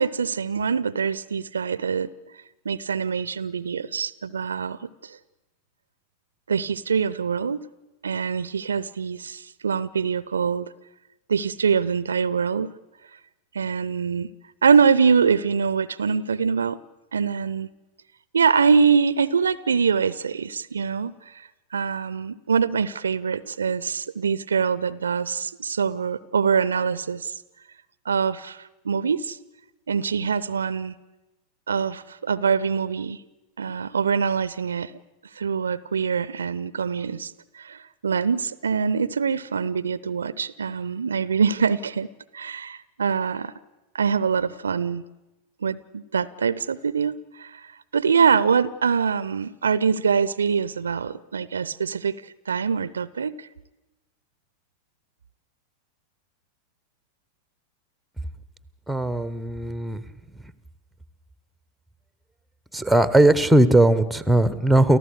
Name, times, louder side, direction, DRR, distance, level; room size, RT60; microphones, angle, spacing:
voice 1, 0.0-2.1 2.6-5.2 6.5-7.7 8.0-10.7 11.3-12.7 13.5-14.3 14.6-16.8 17.1-17.7 18.3-21.1 21.7-27.3 28.1-29.4 29.9-30.9 31.7-33.2 33.6-34.9 35.4-42.1 42.3-43.5 43.9-45.0 45.6-47.6 47.9-52.2 52.5-53.5, right 6 dB, 70° right, 19 dB, 0.7 m, -24 dB
voice 2, 58.9-60.0 62.7-65.0, right 1 dB, ahead, 15 dB, 1.1 m, -18 dB
29.5 x 14.5 x 8.1 m, 1.0 s
figure-of-eight pair, 90°, 0 cm